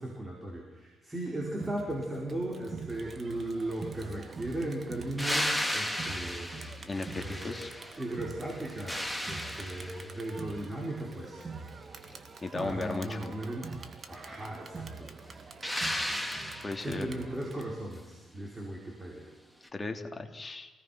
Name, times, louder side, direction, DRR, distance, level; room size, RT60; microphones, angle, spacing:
voice 1, 0.0-6.5 7.1-7.6 8.0-11.4 12.5-13.7 14.1-15.1 16.8-19.3, right 1 dB, 15° right, -1 dB, 5.4 m, -37 dB
Crowd, 1.6-17.6, right 4 dB, 40° right, 2.1 m, -45 dB
sound 1, 5.2-8.1 8.5-10.3 15.6-17.1 19.6-19.7, equal, ahead, 2.2 m, -34 dB
voice 2, 6.8-7.7 12.1-13.4 16.6-17.1 19.7-20.7, left 3 dB, 25° left, 5 dB, 2.8 m, -36 dB
27.5 x 18.5 x 6.1 m, 1.2 s
cardioid pair, 90°, 0 cm